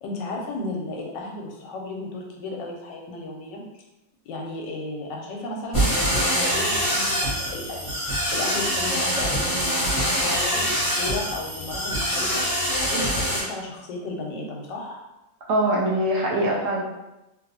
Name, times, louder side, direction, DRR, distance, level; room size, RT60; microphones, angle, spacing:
voice 1, 0.0-3.8 4.2-9.9 10.2-15.0, left 2 dB, 75° left, 0 dB, 1.2 m, -34 dB
sound 1, 5.7-13.4, equal, 25° left, 0.9 m, -24 dB
voice 2, 15.5-16.8, right 1 dB, 70° right, -2 dB, 1.0 m, -22 dB
3.0 x 2.6 x 2.7 m, 0.96 s
omnidirectional pair, 2.0 m